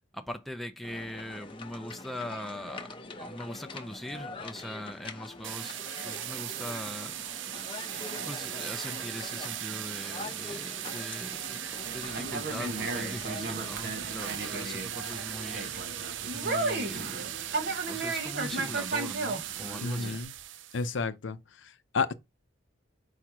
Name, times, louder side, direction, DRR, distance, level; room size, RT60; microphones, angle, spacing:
voice 1, 0.1-7.2 8.2-11.4 11.9-15.7 16.3-17.3 17.9-20.2, left 1 dB, ahead, 0.4 m, -41 dB
sound 1, 0.8-13.8, left 3 dB, 25° left, 0.8 m, -44 dB
sound 2, 5.4-20.9, right 12 dB, 70° right, 0.4 m, -38 dB
Conversation, 11.8-20.2, right 3 dB, 55° right, 1.0 m, -35 dB
voice 2, 19.8-20.3 20.7-22.1, left 4 dB, 70° left, 0.6 m, -32 dB
4.9 x 4.5 x 4.6 m
head